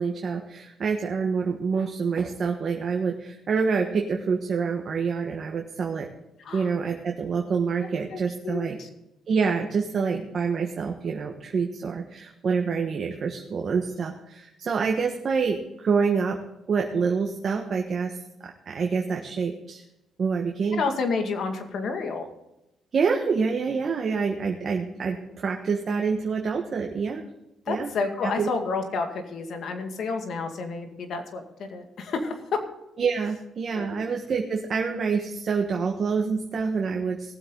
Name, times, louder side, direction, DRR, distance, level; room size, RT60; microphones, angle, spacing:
voice 1, 0.0-6.1 6.5-8.8 9.3-16.4 16.7-19.8 20.2-20.8 22.9-27.3 27.7-27.9 28.2-28.5 33.0-37.3, right 5 dB, 50° right, 2 dB, 1.4 m, -27 dB
voice 2, 8.1-8.9 20.7-22.2 27.7-32.4 33.7-34.0, left 4 dB, 65° left, 5 dB, 2.2 m, -30 dB
18.5 x 7.8 x 3.9 m, 0.90 s
cardioid pair, 90°, 0 cm